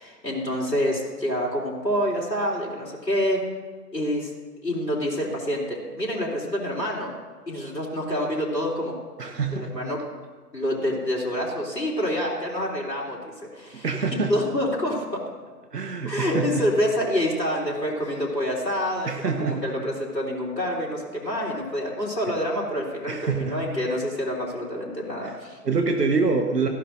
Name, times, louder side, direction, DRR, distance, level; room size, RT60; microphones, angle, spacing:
voice 1, 0.0-3.4 3.9-4.3 4.6-7.1 7.5-9.0 9.5-10.0 10.5-15.2 16.0-25.6, equal, 90° left, -4 dB, 3.5 m, -27 dB
voice 2, 9.2-9.7 13.8-14.3 15.7-16.6 19.1-19.6 23.1-23.6 25.2-25.3 25.6-26.7, right 4 dB, 75° right, 4 dB, 1.3 m, -25 dB
18.0 x 14.5 x 2.6 m, 1.4 s
figure-of-eight pair, 130°, 49 cm